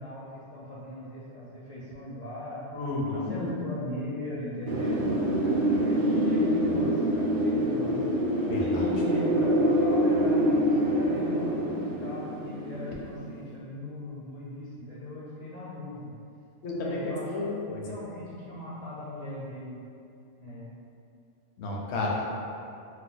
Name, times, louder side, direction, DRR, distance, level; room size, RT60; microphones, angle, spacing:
voice 1, 0.0-2.6 3.1-8.0 8.6-16.1 16.8-17.5 17.8-19.8 20.4-20.7, left 1 dB, 50° left, -8 dB, 0.5 m, -38 dB
voice 2, 2.7-3.5 8.5-8.8 16.6-17.9 21.6-22.2, left 2 dB, 70° left, -3 dB, 0.9 m, -31 dB
Wind, 4.7-13.4, equal, 60° right, 0.6 m, -25 dB
2.8 x 2.2 x 3.8 m, 2.5 s
omnidirectional pair, 1.2 m